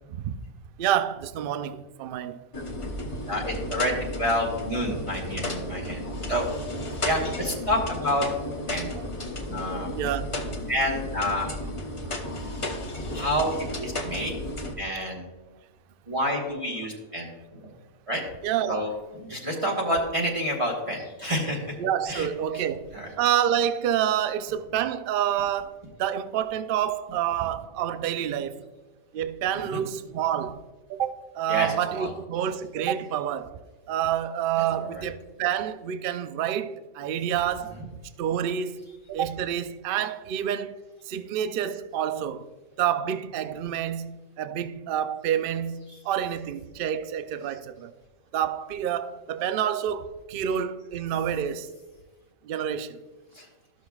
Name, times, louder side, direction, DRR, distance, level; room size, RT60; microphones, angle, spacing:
voice 1, 0.8-2.4 8.9-9.0 10.0-10.4 13.9-14.1 18.4-18.9 21.8-22.9 23.2-25.7 26.0-28.6 29.1-30.6 30.9-33.6 33.9-37.8 38.2-38.8 39.1-40.7 41.1-42.5 42.8-45.8 46.0-47.9 48.3-51.7 52.4-53.0, right 10 dB, 75° right, 0.5 m, -28 dB
sound 1, 2.5-14.7, left 1 dB, 25° left, 0.8 m, -33 dB
voice 2, 3.3-6.5 7.0-8.3 8.7-9.0 9.5-9.9 10.7-11.5 13.1-13.5 13.8-14.4 14.8-15.3 16.1-17.7 18.1-18.2 18.7-18.9 19.1-21.8 22.1-22.3 22.5-22.6 22.9-23.1 29.5-29.8 31.5-32.1 34.6-35.0 37.7-37.9 45.9-46.0 53.3-53.5, equal, 25° right, 1.3 m, -29 dB
13.5 x 6.3 x 2.3 m
omnidirectional pair, 1.5 m